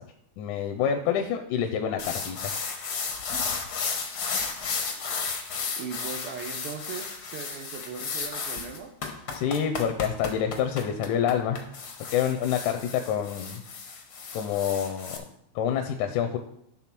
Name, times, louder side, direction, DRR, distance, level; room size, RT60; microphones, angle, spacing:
voice 1, 0.4-2.5 9.3-11.6 12.1-13.6 14.3-15.2 15.6-16.4, left 8 dB, 90° left, 5 dB, 2.1 m, -27 dB
sound 1, 2.0-15.2, left 5 dB, 65° left, 0.9 m, -33 dB
voice 2, 4.9-5.2 5.7-8.9, right 6 dB, 90° right, 4 dB, 1.2 m, -39 dB
11.5 x 3.9 x 5.9 m, 0.74 s
omnidirectional pair, 3.4 m